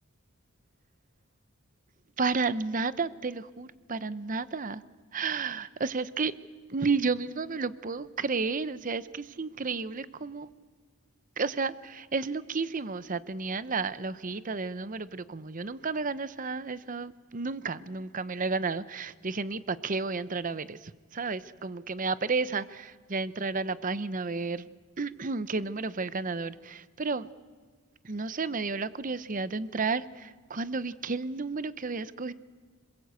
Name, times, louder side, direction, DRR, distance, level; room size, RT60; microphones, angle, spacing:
voice 1, 2.2-4.8 5.1-6.3 6.7-10.5 11.4-24.7 25.0-27.3 28.0-32.3, right 4 dB, 40° right, 15 dB, 0.7 m, -32 dB
26.5 x 21.5 x 8.2 m, 1.5 s
head